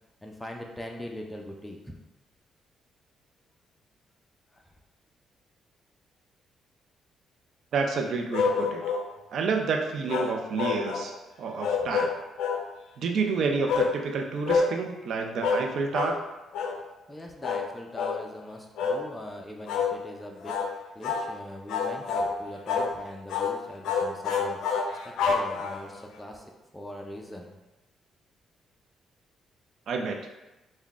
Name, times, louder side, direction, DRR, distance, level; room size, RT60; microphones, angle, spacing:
voice 1, 0.2-2.0 4.5-4.7 11.8-11.9 17.1-20.6 20.9-26.5 26.7-27.6, left 1 dB, 10° left, 1 dB, 0.5 m, -41 dB
voice 2, 7.7-8.8 9.3-11.1 11.4-12.1 13.0-16.2 29.9-30.2, right 4 dB, 65° right, 3 dB, 0.5 m, -29 dB
sound 1, 8.3-9.1 10.1-11.1 11.6-12.6 13.7-13.9 14.5-14.7 15.4-15.7 15.9-16.2 16.5-16.8 17.4-17.7 18.0-18.2 18.8-19.0 19.7-19.9 20.4-20.7 21.0-21.3 21.7-22.3 22.7-22.9 23.3-23.6 23.8-26.0, left 5 dB, 85° left, 0.4 m, -27 dB
3.7 x 2.2 x 3.5 m, 1.0 s
cardioid pair, 90°, 0 cm